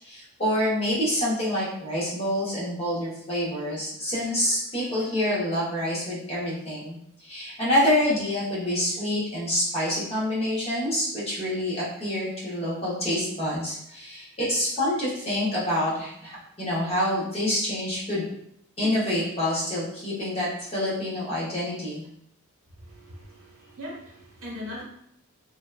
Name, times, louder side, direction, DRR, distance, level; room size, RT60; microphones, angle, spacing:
voice 1, 0.0-18.3 18.8-22.0, left 1 dB, 25° left, -7 dB, 0.8 m, -27 dB
voice 2, 22.8-24.8, left 1 dB, 65° right, -5 dB, 1.0 m, -40 dB
2.7 x 2.1 x 2.2 m, 0.73 s
head